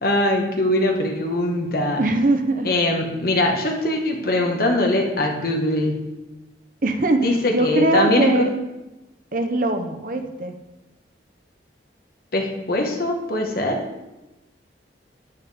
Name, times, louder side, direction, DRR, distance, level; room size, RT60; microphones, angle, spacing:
voice 1, 0.0-2.0 2.6-6.1 7.2-8.5 12.3-13.8, left 1 dB, 50° left, 2 dB, 1.4 m, -22 dB
voice 2, 2.0-2.7 6.8-8.5 9.3-10.6, right 2 dB, 45° right, 6 dB, 0.8 m, -21 dB
10.5 x 9.2 x 3.5 m, 1.0 s
head